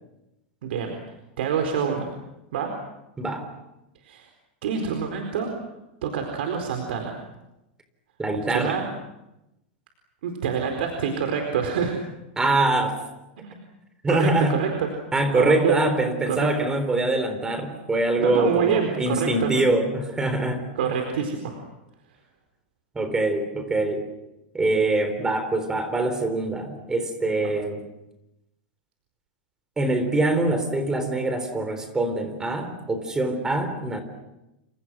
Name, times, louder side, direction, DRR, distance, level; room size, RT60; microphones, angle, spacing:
voice 1, 0.6-1.0 1.4-2.1 2.5-2.7 4.0-4.3 4.6-5.5 6.0-7.2 8.5-8.9 10.2-12.0 13.4-13.6 14.1-14.9 15.3-15.8 16.3-16.7 18.2-19.5 20.8-21.6, right 7 dB, 75° right, 4 dB, 4.4 m, -26 dB
voice 2, 8.2-8.8 12.4-13.0 14.0-14.6 15.1-20.6 23.0-24.0 24.5-27.8 29.8-34.0, right 2 dB, 10° right, 8 dB, 3.8 m, -24 dB
29.0 x 27.5 x 6.3 m, 0.93 s
supercardioid pair, 150°, 6 cm